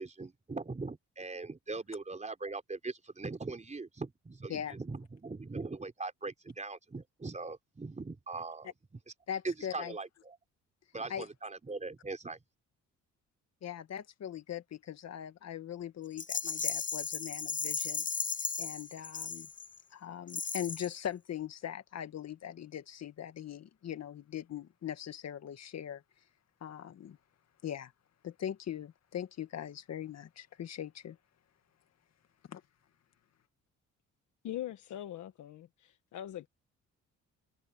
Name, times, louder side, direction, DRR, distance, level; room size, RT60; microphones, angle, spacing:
voice 1, 0.0-9.0 9.4-10.4 10.9-12.4, right 3 dB, 25° right, 4.3 m, -41 dB
voice 2, 9.3-9.9 11.1-11.3 13.6-18.1 18.6-19.5 19.9-26.0 26.6-27.2 27.6-27.9 28.2-31.2 32.5-32.6, left 9 dB, 60° left, 2.0 m, -41 dB
Rattle, 16.2-19.8 20.3-21.0, left 5 dB, 25° left, 0.9 m, -36 dB
voice 3, 34.4-36.5, left 12 dB, 75° left, 1.4 m, -42 dB
cardioid pair, 90°, 30 cm